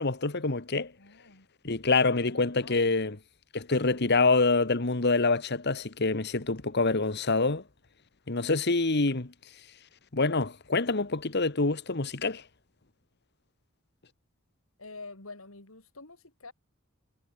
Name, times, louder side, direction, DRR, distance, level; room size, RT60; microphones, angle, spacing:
voice 1, 0.0-0.9 1.6-3.2 3.5-7.6 8.3-9.3 10.1-12.4, left 3 dB, 55° left, 1.5 m, -26 dB
voice 2, 1.0-1.5 2.1-2.9 14.8-16.5, left 3 dB, 85° left, 4.1 m, -47 dB
head